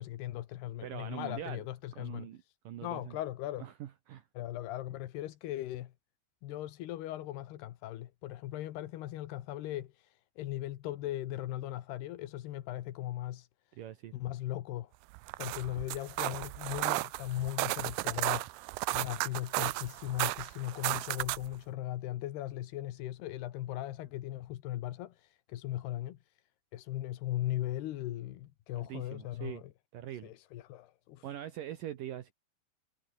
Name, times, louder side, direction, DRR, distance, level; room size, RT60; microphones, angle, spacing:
voice 1, 0.0-2.3 2.8-3.7 4.3-5.9 6.4-13.5 14.1-14.9 15.4-18.6 18.9-26.4 26.7-29.7 30.2-31.3, left 14 dB, 85° left, 3.4 m, -38 dB
voice 2, 0.8-1.6 1.9-3.2 3.6-4.2 13.8-14.2 28.8-29.6 29.9-30.3 31.2-32.3, right 11 dB, 65° right, 2.8 m, -43 dB
sound 1, 15.1-21.6, right 22 dB, 85° right, 2.5 m, -34 dB
omnidirectional pair, 4.5 m